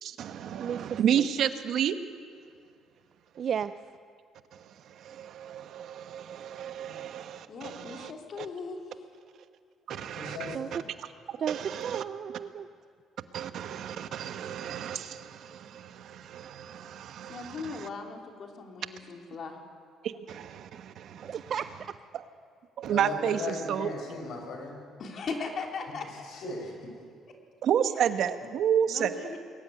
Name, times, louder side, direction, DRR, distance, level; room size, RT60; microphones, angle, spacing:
voice 1, 0.0-1.9 5.0-8.1 9.9-10.6 11.5-12.0 13.3-17.6 20.0-21.4 22.8-23.4 23.7-23.9 27.6-29.1, right 9 dB, 65° right, 10 dB, 1.1 m, -31 dB
voice 2, 0.6-1.3 3.4-3.7 10.5-10.7 11.4-12.7 21.2-21.7, right 8 dB, 50° right, 12 dB, 0.5 m, -33 dB
voice 3, 7.5-9.0 17.3-19.6 25.0-26.3 28.9-29.4, left 4 dB, 55° left, 2 dB, 3.1 m, -38 dB
voice 4, 9.9-10.8 22.8-24.8 26.3-26.9, left 3 dB, 70° left, 2 dB, 6.0 m, -38 dB
21.5 x 14.0 x 9.6 m, 2.2 s
cardioid pair, 95°, 0 cm